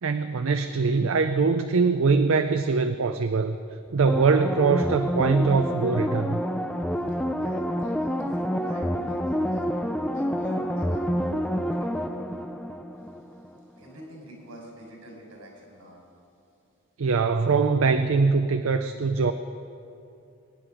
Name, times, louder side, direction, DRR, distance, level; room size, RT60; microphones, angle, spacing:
voice 1, 0.0-3.6 3.9-6.4 17.0-19.3, right 4 dB, 65° right, 8 dB, 0.5 m, -22 dB
sound 1, 4.1-13.5 13.8-13.9, equal, 5° left, 0.4 m, -28 dB
voice 2, 7.1-12.2 13.8-16.0, right 1 dB, 80° right, -1 dB, 4.5 m, -45 dB
24.0 x 9.6 x 5.0 m, 2.7 s
head